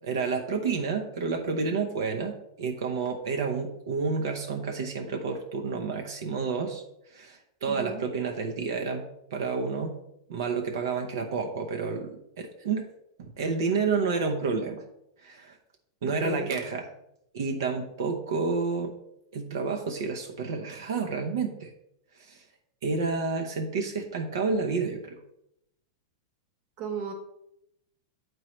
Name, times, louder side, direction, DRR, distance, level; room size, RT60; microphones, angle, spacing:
voice 1, 0.0-6.8 7.1-9.9 10.3-12.9 13.2-14.8 15.2-15.5 16.0-16.9 17.3-18.9 19.3-21.7 22.2-22.4 22.8-25.2, right 4 dB, 80° right, 3 dB, 0.8 m, -30 dB
voice 2, 7.7-8.0 16.1-16.6 26.8-27.1, right 5 dB, 40° right, 5 dB, 1.0 m, -36 dB
7.6 x 4.6 x 3.1 m, 0.80 s
supercardioid pair, 155°, 2 cm